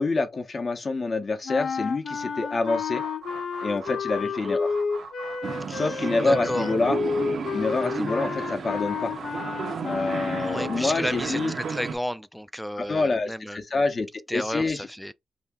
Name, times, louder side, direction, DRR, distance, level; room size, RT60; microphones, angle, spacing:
voice 1, 0.0-3.0 3.6-4.7 5.7-7.0 7.5-9.1 9.8-11.5 12.8-14.1 14.3-14.9, left 3 dB, 40° left, 0.8 m, -26 dB
sound 1, 1.4-11.0, left 5 dB, 65° left, 0.5 m, -31 dB
sound 2, 2.6-11.9, right 4 dB, 85° right, 1.0 m, -43 dB
voice 2, 4.2-4.6 5.7-6.7 10.4-13.6 14.3-15.1, equal, ahead, 0.3 m, -32 dB
sound 3, 5.4-12.0, right 5 dB, 60° right, 0.5 m, -33 dB
2.8 x 2.7 x 3.5 m
cardioid pair, 100°, 0 cm